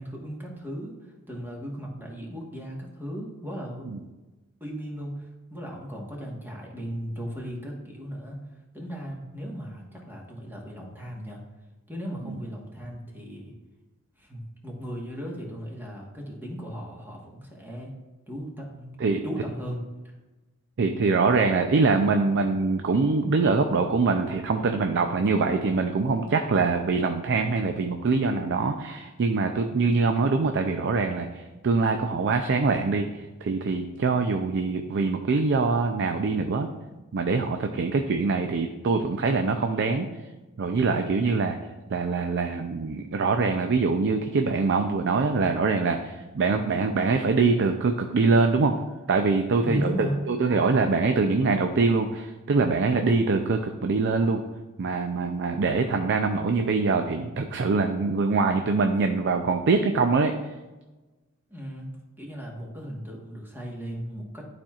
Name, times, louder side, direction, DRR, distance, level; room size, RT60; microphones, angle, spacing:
voice 1, 0.0-4.0 4.6-8.4 8.7-11.4 11.9-13.5 14.2-17.9 18.3-18.9 19.2-20.1 49.6-50.2 61.5-64.5, equal, 10° right, -2 dB, 1.3 m, -36 dB
voice 2, 20.8-36.7 37.1-40.1 40.6-41.6 41.9-48.8 49.1-49.9 50.3-54.4 54.8-60.3, right 4 dB, 55° right, 5 dB, 0.4 m, -24 dB
11.5 x 4.3 x 2.4 m, 1.1 s
head